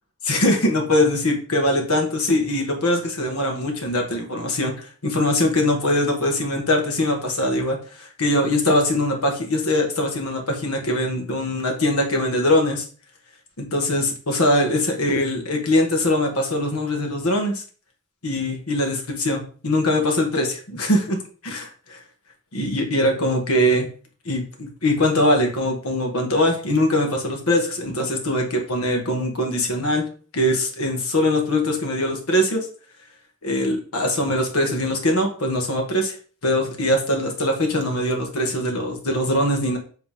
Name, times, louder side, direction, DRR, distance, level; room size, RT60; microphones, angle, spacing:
voice 1, 0.3-12.8 13.6-17.6 18.2-21.2 21.4-22.0 22.5-23.9 24.2-30.0 30.3-32.7 33.4-36.2 36.4-39.8, left 1 dB, 85° left, 2 dB, 1.5 m, -22 dB
8.0 x 3.3 x 3.6 m, 0.41 s
head